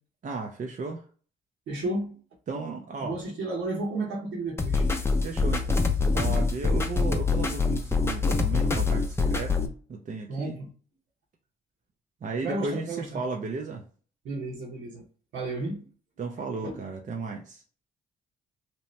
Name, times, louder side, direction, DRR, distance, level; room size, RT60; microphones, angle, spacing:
voice 1, 0.2-1.0 2.5-3.2 5.2-9.6 9.9-10.6 12.2-13.8 16.2-17.6, right 4 dB, 40° right, 1 dB, 0.5 m, -34 dB
voice 2, 1.7-2.2 3.0-4.9 6.2-6.4 10.3-10.7 12.4-13.2 14.2-15.0 15.3-15.9 16.6-16.8, right 2 dB, 75° right, -1 dB, 1.1 m, -32 dB
sound 1, 4.6-9.7, left 4 dB, 15° left, 0.5 m, -25 dB
2.8 x 2.1 x 3.2 m, 0.41 s
supercardioid pair, 55°, 20 cm